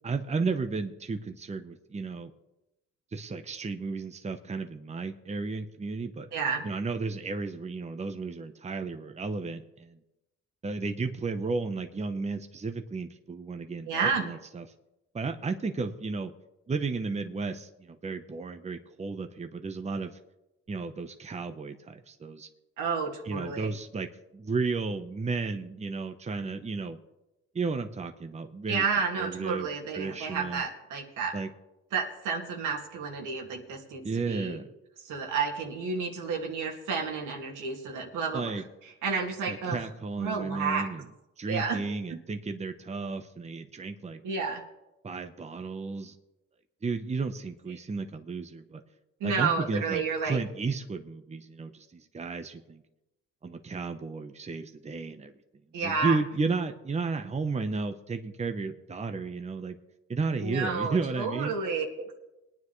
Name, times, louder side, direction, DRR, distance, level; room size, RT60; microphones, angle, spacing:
voice 1, 0.0-2.3 3.1-6.3 6.6-10.0 10.6-14.6 15.1-16.3 16.7-20.1 20.7-22.5 23.2-27.0 27.5-28.8 29.2-29.7 29.9-30.6 31.3-31.5 34.0-34.7 38.3-38.6 39.5-41.0 41.4-44.2 45.0-46.2 46.8-48.8 49.2-52.8 53.4-55.3 55.8-59.8 60.1-61.5, right 4 dB, 20° right, 7 dB, 0.9 m, -33 dB
voice 2, 6.3-6.7 13.9-14.2 22.8-23.7 28.7-31.4 31.9-34.6 35.0-38.5 39.0-39.9 40.2-40.9 41.5-41.8 44.2-44.6 49.2-50.4 55.7-56.2 60.4-62.2, right 5 dB, 85° right, 1 dB, 2.3 m, -31 dB
21.5 x 9.7 x 3.2 m, 0.94 s
cardioid pair, 90°, 30 cm